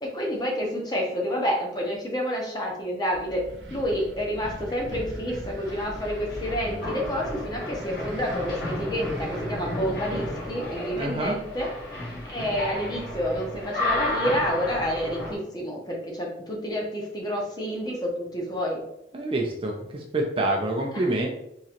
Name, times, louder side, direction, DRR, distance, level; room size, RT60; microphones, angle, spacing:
voice 1, 0.0-3.4 3.7-11.7 12.2-18.8 20.9-21.0, equal, 20° left, -1 dB, 0.8 m, -29 dB
Wind, 3.1-11.2, right 1 dB, 90° right, 0.8 m, -42 dB
sound 1, 5.6-15.3, left 1 dB, 55° left, 1.4 m, -33 dB
voice 2, 11.0-11.4 19.1-21.3, right 1 dB, 30° right, 0 dB, 0.5 m, -27 dB
3.7 x 3.0 x 2.9 m, 0.79 s
head